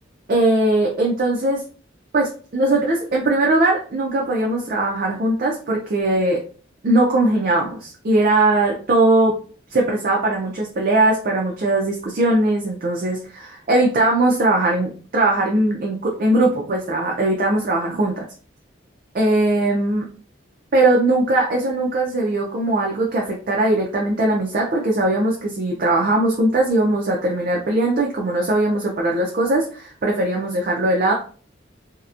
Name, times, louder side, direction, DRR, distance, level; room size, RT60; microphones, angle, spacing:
voice 1, 0.3-1.6 2.1-6.4 6.8-9.3 9.7-18.3 19.1-20.0 20.7-31.1, right 2 dB, 45° right, -1 dB, 0.4 m, -20 dB
2.8 x 2.1 x 2.4 m, 0.41 s
head